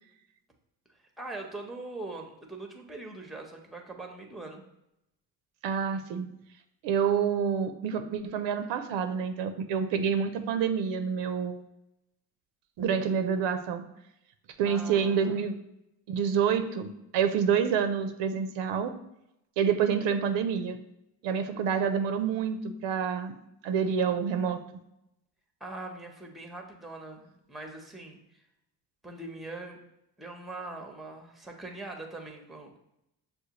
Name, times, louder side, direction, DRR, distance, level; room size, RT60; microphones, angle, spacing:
voice 1, 1.2-4.6 14.6-15.4 25.6-28.4 29.0-29.8 30.2-32.8, right 2 dB, ahead, 3 dB, 0.6 m, -42 dB
voice 2, 5.6-6.3 6.8-11.6 12.8-13.8 14.6-15.6 16.1-18.9 19.6-20.8 21.2-23.3 23.6-24.6, right 7 dB, 85° right, 8 dB, 0.5 m, -28 dB
6.4 x 2.2 x 2.8 m, 0.84 s
cardioid pair, 85°, 42 cm